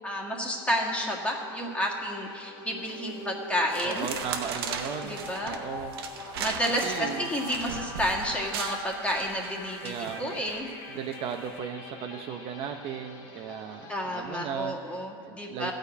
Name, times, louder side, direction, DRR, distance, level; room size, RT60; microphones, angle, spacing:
voice 1, 0.0-4.1 5.0-5.6 6.4-9.9 10.2-10.7 13.9-15.7, equal, 10° left, -2 dB, 1.8 m, -30 dB
sound 1, 0.5-14.3, left 2 dB, 80° left, 2.9 m, -43 dB
sound 2, 2.9-3.2 3.7-10.6 11.1-11.3, right 6 dB, 85° right, 1.0 m, -37 dB
voice 2, 3.8-5.9 6.8-7.3 9.8-10.4 10.9-15.7, right 8 dB, 50° right, 5 dB, 0.8 m, -37 dB
13.0 x 5.2 x 8.3 m, 2.3 s
supercardioid pair, 110°, 12 cm